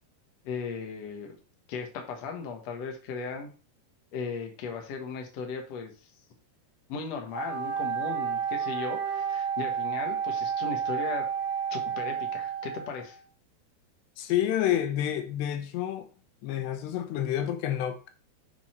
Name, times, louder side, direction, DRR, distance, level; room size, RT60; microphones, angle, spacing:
voice 1, 0.4-1.4 1.7-3.5 4.1-5.9 6.9-11.3 11.7-13.2, left 5 dB, 55° left, 2.0 m, -37 dB
Wind instrument woodwind instrument, 7.3-13.2, right 7 dB, 15° right, 1.4 m, -31 dB
voice 2, 14.2-16.1 16.4-18.1, left 11 dB, 90° left, 3.1 m, -29 dB
7.7 x 5.5 x 4.5 m
omnidirectional pair, 4.8 m